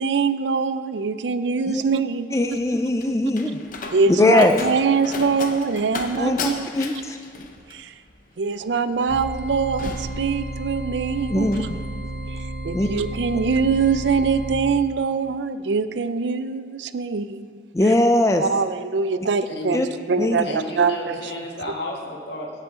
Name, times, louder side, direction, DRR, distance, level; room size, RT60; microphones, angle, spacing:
voice 1, 0.0-2.6 3.9-6.7 7.7-7.9 8.4-11.7 12.6-17.6 18.4-21.4, right 5 dB, 75° right, 12 dB, 0.5 m, -23 dB
voice 2, 2.3-3.6 4.2-4.5 6.2-7.2 11.3-11.8 12.7-12.9 17.7-18.5 19.7-19.9 20.2-20.5, left 1 dB, 15° left, 5 dB, 0.4 m, -20 dB
Slam, 2.5-11.0 11.3-11.7, left 4 dB, 50° left, 0.7 m, -36 dB
sound 1, 9.1-14.5, right 1 dB, 55° right, 2.5 m, -32 dB
voice 3, 19.5-19.9 20.4-22.5, left 2 dB, 70° left, 0 dB, 1.7 m, -32 dB
17.5 x 7.5 x 3.8 m, 2.2 s
head